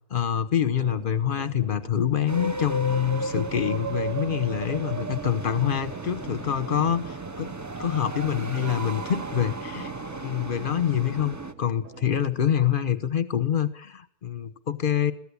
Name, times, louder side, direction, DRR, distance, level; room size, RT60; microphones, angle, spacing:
voice 1, 0.1-7.5 7.8-9.9 10.2-15.1, left 9 dB, 35° left, 13 dB, 1.1 m, -26 dB
sound 1, 0.7-12.6, right 7 dB, 55° right, 1.6 m, -46 dB
sound 2, 2.3-11.5, right 2 dB, 20° right, 0.5 m, -34 dB
22.0 x 15.5 x 8.6 m, 0.65 s
omnidirectional pair, 1.7 m